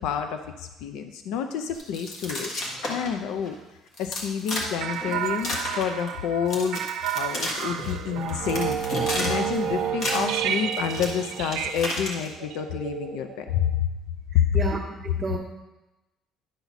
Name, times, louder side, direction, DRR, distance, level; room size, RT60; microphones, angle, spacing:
voice 1, 0.0-2.5 2.9-3.6 4.0-6.8 7.1-8.8 9.1-13.9 14.3-14.6, left 8 dB, 75° left, 7 dB, 0.5 m, -28 dB
sound 1, 1.7-3.2 3.4-3.5 3.9-4.7 4.9-6.2 6.5-7.9 8.3-9.6 9.8-12.3, left 1 dB, 40° left, 1.6 m, -32 dB
sound 2, 4.8-13.7, right 9 dB, 75° right, 0.6 m, -31 dB
voice 2, 14.3-15.4, right 3 dB, 20° right, 0 dB, 0.6 m, -31 dB
10.0 x 4.1 x 5.8 m, 1.0 s
cardioid pair, 175°, 0 cm